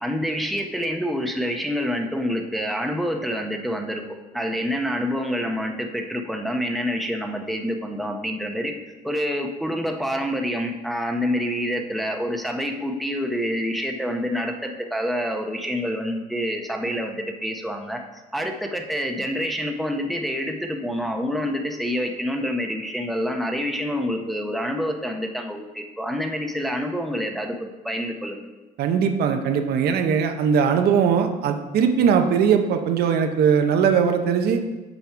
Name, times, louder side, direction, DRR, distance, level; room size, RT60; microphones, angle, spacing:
voice 1, 0.0-4.0 4.3-8.7 9.0-28.5, equal, ahead, 2 dB, 0.8 m, -27 dB
voice 2, 28.8-34.6, right 7 dB, 70° right, 6 dB, 0.7 m, -20 dB
7.2 x 5.3 x 4.6 m, 1.2 s
cardioid pair, 110°, 17 cm